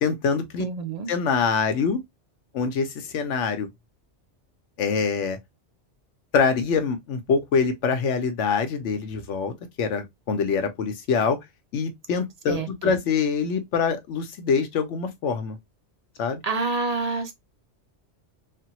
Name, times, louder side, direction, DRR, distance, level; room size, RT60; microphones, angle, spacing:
voice 1, 0.0-0.6 1.1-2.0 2.5-3.7 4.8-5.4 6.3-11.4 11.7-15.6 16.2-16.4, left 5 dB, 90° left, 1.0 m, -24 dB
voice 2, 0.6-1.1 12.5-12.7 16.4-17.3, right 3 dB, 45° right, 0.5 m, -27 dB
3.3 x 2.1 x 2.8 m
omnidirectional pair, 1.2 m